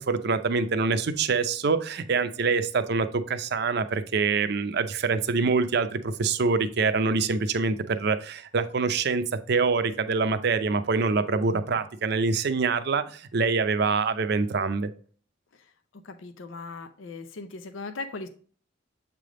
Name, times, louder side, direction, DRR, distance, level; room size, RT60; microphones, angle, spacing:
voice 1, 0.0-14.9, right 4 dB, 55° right, 0.5 m, -25 dB
voice 2, 15.9-18.3, left 3 dB, 85° left, 0.6 m, -38 dB
7.5 x 3.4 x 3.7 m
head